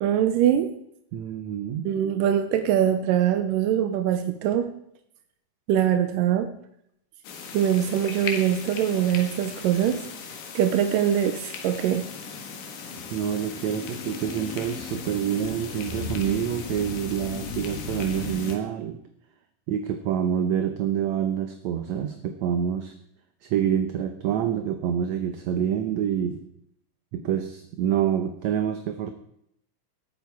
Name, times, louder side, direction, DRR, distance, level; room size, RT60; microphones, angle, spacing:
voice 1, 0.0-0.7 1.9-4.7 5.7-6.5 7.5-10.0 10.6-12.1, right 10 dB, 90° right, 9 dB, 2.5 m, -23 dB
voice 2, 1.1-1.9 13.1-19.0 19.7-22.9 23.4-26.4 27.1-29.1, right 9 dB, 70° right, 7 dB, 1.9 m, -27 dB
sound 1, 7.2-18.6, left 5 dB, 90° left, 3.4 m, -36 dB
19.0 x 8.9 x 4.7 m, 0.73 s
omnidirectional pair, 3.8 m